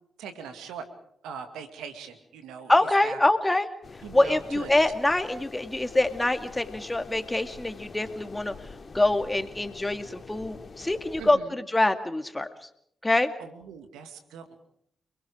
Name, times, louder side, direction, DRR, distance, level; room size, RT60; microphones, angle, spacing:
voice 1, 0.2-0.8 1.2-3.2 4.0-4.7 11.2-11.5 13.2-14.6, right 7 dB, 85° right, 7 dB, 2.2 m, -41 dB
voice 2, 2.7-3.7 4.1-8.5 8.9-12.5 13.0-13.3, left 2 dB, 20° left, 8 dB, 2.4 m, -25 dB
sound 1, 3.8-11.3, left 4 dB, 45° left, 2.9 m, -45 dB
29.5 x 21.5 x 5.0 m, 0.70 s
hypercardioid pair, 40°, 0 cm